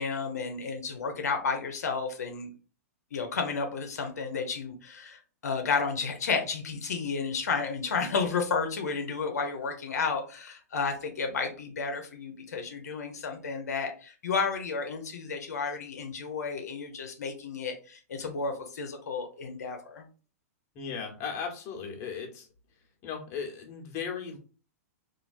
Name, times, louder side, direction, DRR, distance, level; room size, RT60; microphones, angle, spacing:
voice 1, 0.0-2.5 3.1-20.0, left 5 dB, 85° left, 4 dB, 0.6 m, -32 dB
voice 2, 20.7-22.5 23.0-24.4, left 6 dB, 35° left, 2 dB, 0.9 m, -36 dB
3.1 x 2.4 x 2.5 m, 0.38 s
hypercardioid pair, 130°, 9 cm